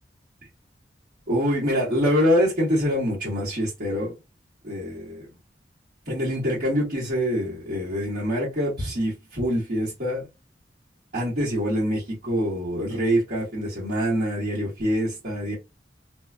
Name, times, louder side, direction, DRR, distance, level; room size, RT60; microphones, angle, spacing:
voice 1, 1.3-4.1 4.6-5.3 6.1-10.2 11.1-15.5, equal, 55° right, 1.2 m, -25 dB
2.4 x 2.2 x 2.4 m
head